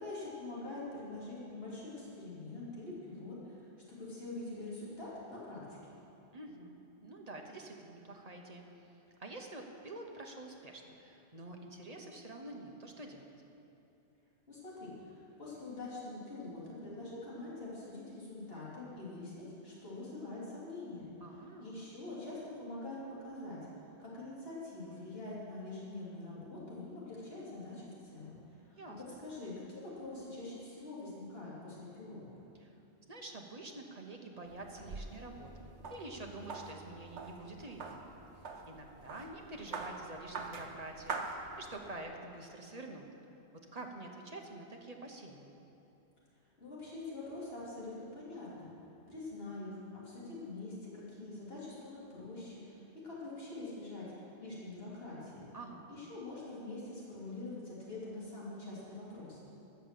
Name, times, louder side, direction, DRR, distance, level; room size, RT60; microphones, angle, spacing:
voice 1, 0.0-3.7 4.0-5.9 14.5-21.1 21.6-28.7 29.2-32.2 46.6-48.7 49.1-55.4 55.9-59.4, left 2 dB, 60° left, -8 dB, 3.4 m, -45 dB
voice 2, 6.3-8.9 9.2-13.3 21.2-21.8 28.8-29.0 32.6-32.7 33.1-38.0 38.7-43.1 43.7-45.6 55.5-55.9, right 2 dB, 35° right, 2 dB, 1.1 m, -47 dB
sound 1, 34.5-42.0, right 4 dB, 75° right, 1.2 m, -45 dB
13.5 x 6.8 x 7.6 m, 3.0 s
omnidirectional pair, 1.1 m